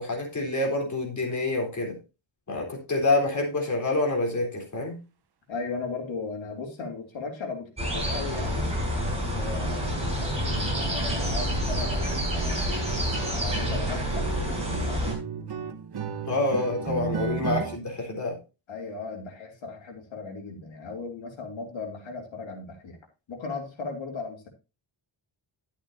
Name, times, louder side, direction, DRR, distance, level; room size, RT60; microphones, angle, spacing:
voice 1, 0.0-2.0 2.5-5.0 16.3-18.4, left 2 dB, 40° left, 1 dB, 3.8 m, -27 dB
voice 2, 5.5-8.7 9.1-12.7 13.3-15.1 17.0-17.5 18.7-23.0 23.3-24.5, left 4 dB, 80° left, 2 dB, 2.9 m, -37 dB
sound 1, 7.8-15.1, equal, 15° right, 5.0 m, -28 dB
sound 2, 7.8-7.9 8.2-8.4 8.7-17.8, right 6 dB, 55° right, 1.1 m, -36 dB
11.5 x 8.6 x 2.7 m, 0.29 s
wide cardioid pair, 125°, 46 cm